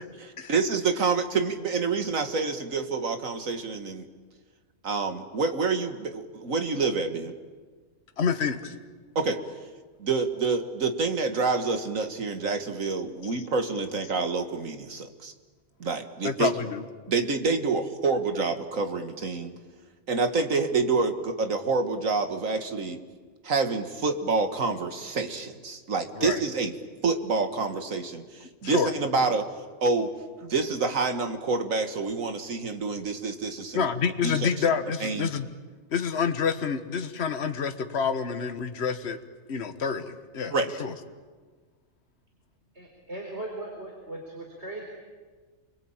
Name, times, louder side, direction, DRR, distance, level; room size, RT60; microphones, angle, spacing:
voice 1, 0.5-4.0 4.8-7.3 9.2-9.4 10.0-15.3 15.8-16.5 17.1-19.5 20.1-23.0 23.4-26.7 27.0-29.5 29.8-30.1 30.4-33.9 34.2-34.5 35.0-35.3 40.5-40.7, right 4 dB, 75° right, 7 dB, 2.2 m, -27 dB
voice 2, 8.2-8.7 13.2-13.4 16.2-16.8 26.1-26.4 28.6-28.9 33.7-35.5 35.9-39.2 39.5-40.5 40.8-40.9, left 6 dB, 55° left, 8 dB, 1.6 m, -28 dB
voice 3, 42.7-44.8, right 2 dB, 50° right, 0 dB, 4.3 m, -38 dB
29.5 x 22.5 x 8.9 m, 1.4 s
omnidirectional pair, 1.4 m